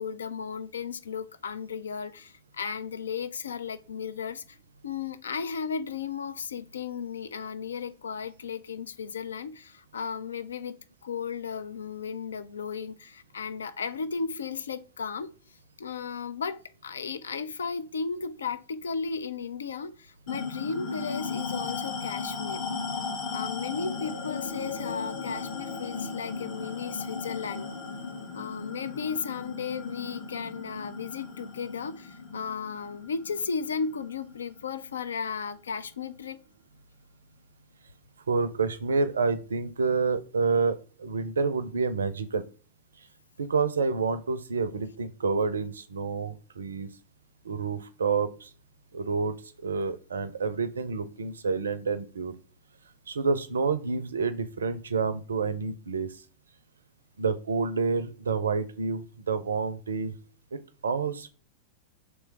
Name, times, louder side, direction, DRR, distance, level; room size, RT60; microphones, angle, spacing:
voice 1, 0.0-4.6 4.8-10.8 11.0-15.3 15.8-22.6 23.3-27.7 28.3-36.4, left 6 dB, 70° left, 0.3 m, -35 dB
sound 1, 20.3-35.1, left 4 dB, 40° left, 1.1 m, -36 dB
voice 2, 38.3-42.5 43.4-46.9 47.4-48.5 48.9-49.4 49.6-52.4 53.1-56.2 57.2-60.1 60.5-61.3, right 4 dB, 70° right, 0.4 m, -28 dB
3.2 x 3.1 x 4.5 m
figure-of-eight pair, 90°, 0 cm